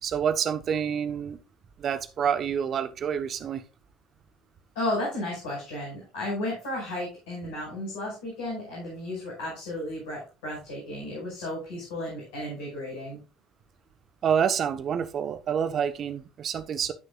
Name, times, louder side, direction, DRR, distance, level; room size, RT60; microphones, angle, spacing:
voice 1, 0.0-1.4 1.8-3.6 14.2-16.9, right 8 dB, 45° right, 1.0 m, -27 dB
voice 2, 4.7-13.2, left 1 dB, 70° left, 5.7 m, -33 dB
14.5 x 6.6 x 2.4 m
figure-of-eight pair, 60°, 0 cm